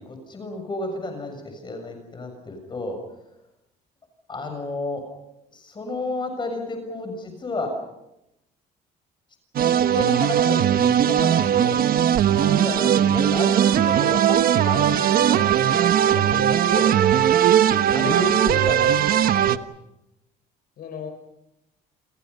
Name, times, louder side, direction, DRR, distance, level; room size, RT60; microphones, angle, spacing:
voice 1, 0.0-3.0 4.3-5.0 5.5-7.7 9.9-11.8 12.3-16.9 17.9-19.5, left 2 dB, 25° left, 5 dB, 7.0 m, -31 dB
sound 1, 9.6-19.6, right 10 dB, 60° right, 1.3 m, -19 dB
sound 2, 10.6-18.5, right 11 dB, 85° right, 3.5 m, -32 dB
voice 2, 17.9-19.0 20.8-21.1, left 7 dB, 65° left, 6 dB, 5.1 m, -40 dB
29.5 x 29.0 x 5.6 m, 0.85 s
cardioid pair, 110°, 17 cm